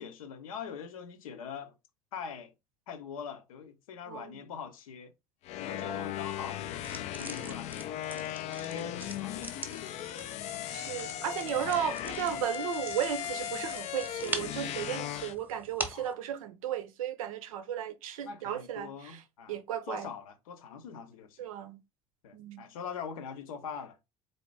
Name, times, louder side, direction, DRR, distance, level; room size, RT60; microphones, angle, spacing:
voice 1, 0.0-1.7 2.1-2.5 2.9-5.1 5.6-10.0 11.4-11.8 12.3-12.5 15.9-16.1 18.2-19.6 19.9-21.4 22.2-24.0, left 7 dB, 65° left, 0.7 m, -43 dB
voice 2, 4.1-4.4 5.7-6.1 10.7-19.2 19.5-20.1 21.4-21.8 22.3-22.6, right 10 dB, 65° right, 0.6 m, -35 dB
sound 1, 5.4-15.3, left 11 dB, 35° left, 0.4 m, -37 dB
sound 2, 6.8-16.1, right 2 dB, 10° right, 0.9 m, -43 dB
4.2 x 2.7 x 3.2 m
figure-of-eight pair, 70°, 19 cm